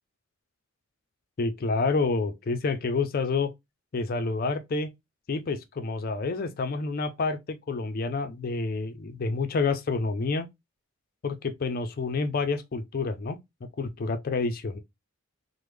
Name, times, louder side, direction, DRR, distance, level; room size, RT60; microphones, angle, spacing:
voice 1, 1.4-3.5 3.9-4.9 5.3-10.5 11.2-13.4 13.8-14.8, left 4 dB, 45° left, 0.4 m, -28 dB
3.1 x 2.0 x 3.3 m
head